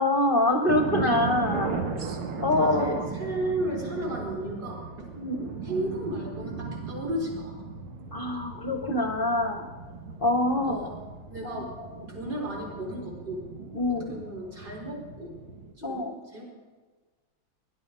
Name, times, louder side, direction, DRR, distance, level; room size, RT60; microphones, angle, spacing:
voice 1, 0.0-3.1 5.2-5.5 8.1-9.7 10.2-10.9 11.4-11.6 13.7-14.2 15.8-16.2, left 1 dB, 40° left, 5 dB, 0.7 m, -26 dB
sound 1, 0.7-15.7, right 5 dB, 90° right, 2.2 m, -37 dB
voice 2, 2.3-5.1 5.6-7.6 10.6-10.9 11.3-11.7 12.0-13.4 13.9-15.3 15.8-16.0 16.3-16.5, right 1 dB, 50° right, -2 dB, 5.1 m, -34 dB
19.5 x 11.5 x 5.5 m, 1.4 s
omnidirectional pair, 2.3 m